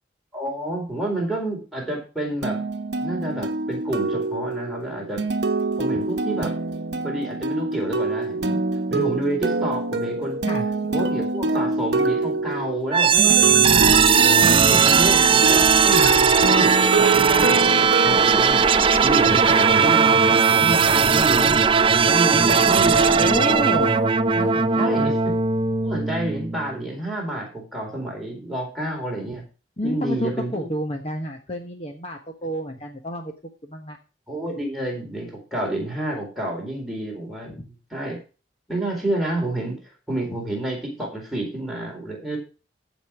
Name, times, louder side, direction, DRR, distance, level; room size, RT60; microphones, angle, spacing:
voice 1, 0.3-2.7 3.0-5.2 5.8-6.5 7.0-8.6 8.9-10.4 10.9-14.0 14.7-18.6 19.0-21.6 22.1-23.6 24.8-25.2 25.8-29.4 29.8-30.7 34.3-38.2 38.7-39.8 40.1-42.4, right 1 dB, ahead, -3 dB, 4.1 m, -29 dB
sound 1, 2.4-19.1, right 3 dB, 70° right, 1.0 m, -25 dB
sound 2, 12.9-26.8, right 6 dB, 30° right, 0.5 m, -18 dB
voice 2, 14.4-14.9 23.2-24.0 24.3-25.1 29.8-33.3 33.6-34.0 37.5-37.7, equal, 35° left, 3 dB, 1.2 m, -29 dB
14.0 x 5.3 x 6.0 m, 0.34 s
head